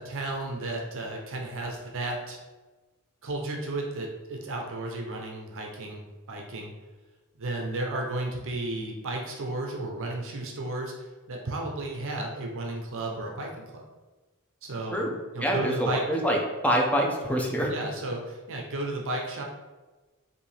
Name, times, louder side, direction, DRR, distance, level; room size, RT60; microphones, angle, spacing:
voice 1, 0.0-2.4 3.2-6.7 7.4-13.8 14.6-15.0 15.3-16.0 17.7-19.4, right 2 dB, 60° right, 1 dB, 0.7 m, -33 dB
voice 2, 15.4-16.4 16.6-17.7, equal, 5° left, -1 dB, 0.7 m, -25 dB
5.2 x 2.7 x 3.3 m, 1.2 s
head